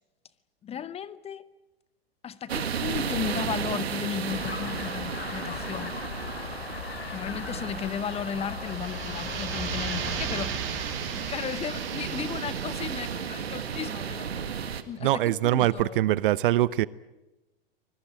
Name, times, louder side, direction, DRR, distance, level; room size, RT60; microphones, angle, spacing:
voice 1, 0.6-1.5 2.2-6.0 7.1-10.7 11.1-14.3 14.9-16.0, left 8 dB, 20° left, 17 dB, 0.8 m, -35 dB
sound 1, 2.5-14.8, right 7 dB, 80° right, 1.9 m, -34 dB
sound 2, 4.3-10.3, left 6 dB, 75° left, 3.4 m, -38 dB
sound 3, 8.5-14.2, right 7 dB, 40° right, 6.0 m, -36 dB
voice 2, 15.0-16.9, right 14 dB, 60° right, 20 dB, 0.8 m, -23 dB
24.5 x 21.0 x 8.7 m, 1.1 s
hypercardioid pair, 110°, 31 cm